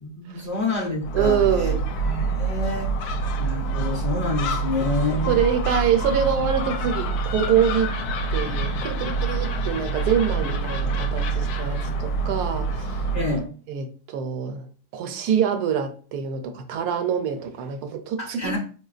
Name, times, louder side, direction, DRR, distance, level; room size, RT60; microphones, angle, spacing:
voice 1, 0.0-1.7 2.0-2.9 3.4-5.4 13.1-13.5 18.2-18.6, left 2 dB, 40° left, 0.6 m, -28 dB
Gull seagull, 1.0-13.4, right 3 dB, 75° left, 1.1 m, -26 dB
voice 2, 1.1-1.9 5.3-8.0 8.3-13.0 13.7-18.6, right 8 dB, 80° right, 1.1 m, -25 dB
4.4 x 2.7 x 2.4 m
omnidirectional pair, 1.7 m